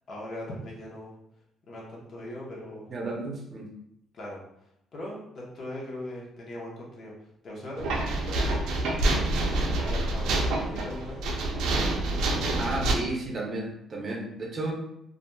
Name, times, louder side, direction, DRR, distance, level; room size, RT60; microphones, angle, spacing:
voice 1, 0.1-1.1 1.7-2.9 4.1-4.4 4.9-7.1 7.4-8.8 9.2-11.2, left 1 dB, 50° left, -3 dB, 0.8 m, -40 dB
voice 2, 2.9-3.7 12.6-14.7, right 2 dB, 35° right, 0 dB, 0.6 m, -33 dB
sound 1, 7.8-12.9, right 2 dB, 85° right, 0.4 m, -27 dB
2.8 x 2.4 x 2.2 m, 0.78 s
cardioid pair, 105°, 0 cm